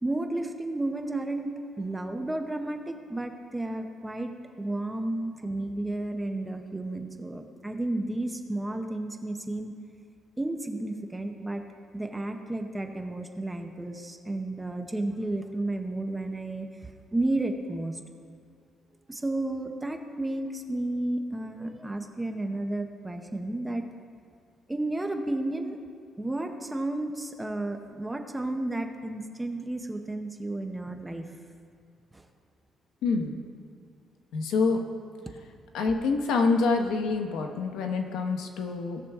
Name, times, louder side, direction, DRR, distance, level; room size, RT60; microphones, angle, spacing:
voice 1, 0.0-9.8 10.4-11.6 11.9-18.0 19.1-23.9 24.7-25.8 26.2-31.3 32.1-32.2, right 2 dB, 10° right, 5 dB, 0.7 m, -32 dB
voice 2, 33.0-33.4 34.3-34.8 35.7-39.0, left 4 dB, 90° left, 4 dB, 1.0 m, -26 dB
17.5 x 6.8 x 3.5 m, 2.3 s
cardioid pair, 170°, 0 cm